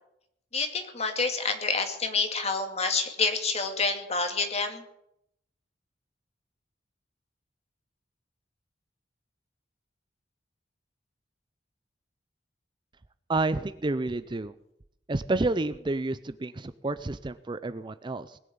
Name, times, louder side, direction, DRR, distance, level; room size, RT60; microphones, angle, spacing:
voice 1, 0.5-4.8, left 4 dB, 35° left, 5 dB, 2.3 m, -28 dB
voice 2, 13.3-14.5 15.1-18.4, right 2 dB, 25° right, 13 dB, 0.5 m, -30 dB
20.5 x 7.2 x 8.6 m, 0.77 s
head